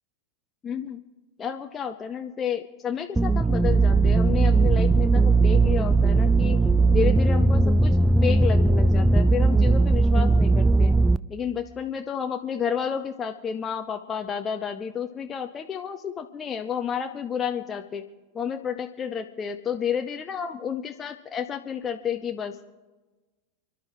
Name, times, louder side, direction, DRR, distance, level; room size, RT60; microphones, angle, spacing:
voice 1, 0.6-1.0 1.4-6.6 6.9-11.0 11.3-18.0 18.3-22.6, left 7 dB, 20° left, 5 dB, 0.7 m, -31 dB
sound 1, 3.2-11.2, right 3 dB, 5° right, 0.4 m, -19 dB
29.5 x 11.0 x 3.5 m, 1.2 s
figure-of-eight pair, 90°, 0 cm